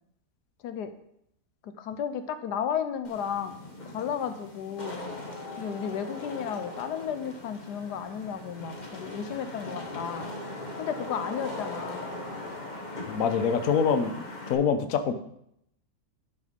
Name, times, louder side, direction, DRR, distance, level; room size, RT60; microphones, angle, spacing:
voice 1, 1.6-3.6 3.9-5.0 5.6-10.3 10.8-12.0, left 8 dB, 85° left, 9 dB, 1.3 m, -33 dB
Wind / Rain, 3.0-14.5, left 2 dB, 30° left, 1.5 m, -39 dB
voice 2, 13.1-15.1, left 6 dB, 60° left, 8 dB, 1.2 m, -25 dB
11.0 x 6.3 x 5.1 m, 0.74 s
omnidirectional pair, 1.7 m